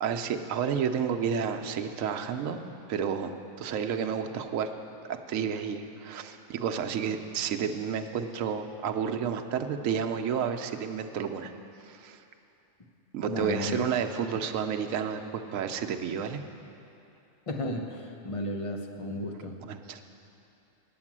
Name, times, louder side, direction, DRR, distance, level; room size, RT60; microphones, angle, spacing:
voice 1, 0.0-2.6 2.9-3.3 3.6-4.7 5.1-11.5 11.8-12.2 13.1-16.4 19.7-20.0, right 7 dB, 80° right, 6 dB, 1.0 m, -31 dB
voice 2, 13.3-13.8 17.5-19.6, left 1 dB, 30° left, 2 dB, 0.7 m, -34 dB
8.9 x 8.6 x 7.3 m, 2.8 s
omnidirectional pair, 1.3 m